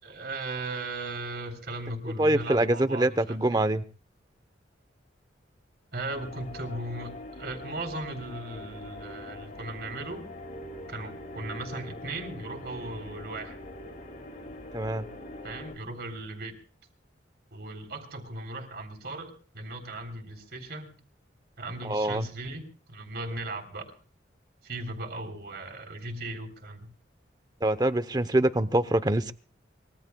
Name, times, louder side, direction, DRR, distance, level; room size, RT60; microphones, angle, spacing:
voice 1, 0.0-3.6 5.9-10.3 10.9-13.6 15.4-16.5 17.5-20.9 21.6-23.9 24.6-26.9, right 2 dB, 60° right, 3.6 m, -37 dB
voice 2, 2.2-3.8 14.7-15.1 21.8-22.3 27.6-29.3, right 1 dB, 20° right, 0.9 m, -25 dB
sound 1, 6.1-15.8, left 1 dB, 45° left, 2.6 m, -43 dB
24.5 x 22.5 x 2.3 m
head